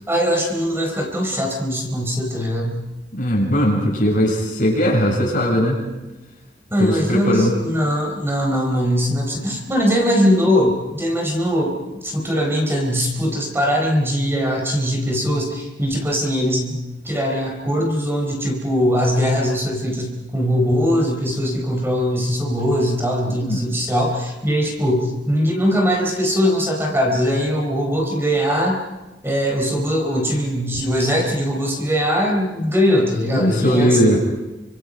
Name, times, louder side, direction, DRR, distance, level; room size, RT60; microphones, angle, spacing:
voice 1, 0.1-2.8 6.7-28.8 29.2-34.2, equal, 15° right, 1 dB, 4.3 m, -21 dB
voice 2, 3.2-5.8 6.8-7.5 23.3-23.7 33.3-34.2, equal, 50° left, -1 dB, 8.0 m, -19 dB
29.0 x 26.5 x 5.3 m, 1.1 s
head